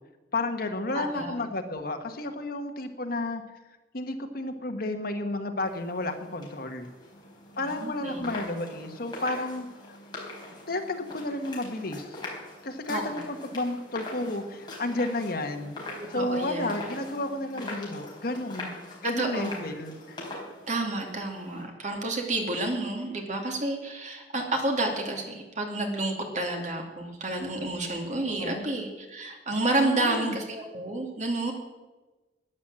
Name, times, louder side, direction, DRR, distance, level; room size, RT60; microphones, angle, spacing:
voice 1, 0.3-3.4 3.9-6.9 7.6-10.0 10.7-12.2 12.6-15.8 16.1-18.7 19.0-20.2 28.4-28.6 29.8-30.4, left 2 dB, 55° left, 6 dB, 1.5 m, -32 dB
voice 2, 0.9-1.4 7.8-8.3 12.9-13.2 16.2-16.8 19.2-19.7 20.7-31.5, right 2 dB, 45° right, 2 dB, 2.6 m, -30 dB
sound 1, 5.6-21.6, left 2 dB, 25° left, 4.5 m, -43 dB
12.5 x 10.0 x 7.6 m, 1.2 s
head